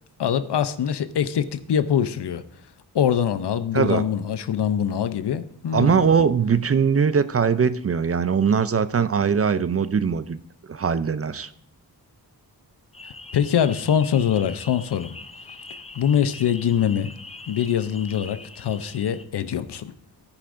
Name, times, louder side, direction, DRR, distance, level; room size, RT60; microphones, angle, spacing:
voice 1, 0.2-2.4 2.9-6.1 13.3-15.1 15.9-17.1 17.5-19.9, left 9 dB, 80° left, 12 dB, 0.7 m, -23 dB
voice 2, 3.7-4.1 5.7-10.4 10.7-11.5, right 6 dB, 35° right, 13 dB, 0.4 m, -21 dB
sound 1, 12.9-19.3, left 3 dB, 15° left, 0.5 m, -42 dB
13.5 x 10.0 x 2.6 m, 0.73 s
wide cardioid pair, 125°, 40 cm